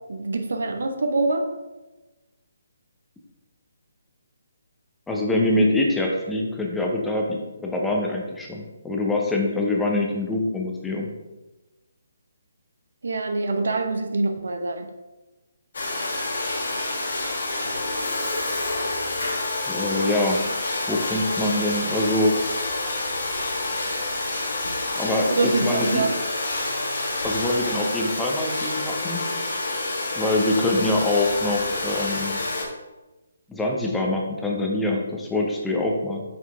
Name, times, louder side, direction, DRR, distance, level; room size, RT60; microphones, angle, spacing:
voice 1, 0.1-1.4 13.0-14.9 25.3-26.1, right 3 dB, 65° right, 6 dB, 0.8 m, -24 dB
voice 2, 5.1-11.1 19.7-20.5 20.9-22.4 25.0-26.1 27.2-29.3 30.2-32.4 33.5-36.2, left 2 dB, 5° left, -1 dB, 0.8 m, -24 dB
Domestic sounds home sounds, 15.7-32.6, left 2 dB, 60° left, 1.3 m, -28 dB
5.8 x 4.5 x 3.6 m, 1.1 s
figure-of-eight pair, 140°, 0 cm